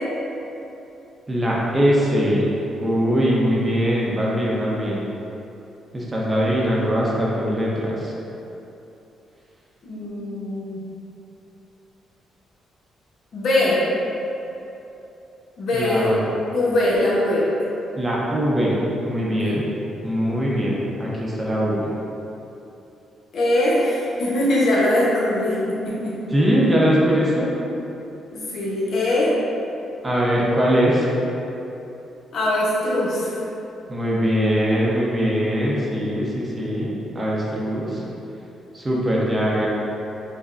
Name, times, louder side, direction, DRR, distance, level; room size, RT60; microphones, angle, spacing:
voice 1, 1.3-5.1 5.9-8.1 15.7-16.3 18.0-19.7 20.0-21.9 26.3-27.5 30.0-31.1 33.9-38.0 38.7-39.7, equal, 20° right, -5 dB, 0.7 m, -21 dB
voice 2, 9.8-10.9 13.3-13.8 15.6-16.1 16.5-17.5 19.4-19.6 23.3-26.2 28.3-29.3 32.3-33.4, left 1 dB, 65° left, -7 dB, 0.9 m, -21 dB
5.0 x 2.2 x 2.5 m, 2.9 s
cardioid pair, 90°, 0 cm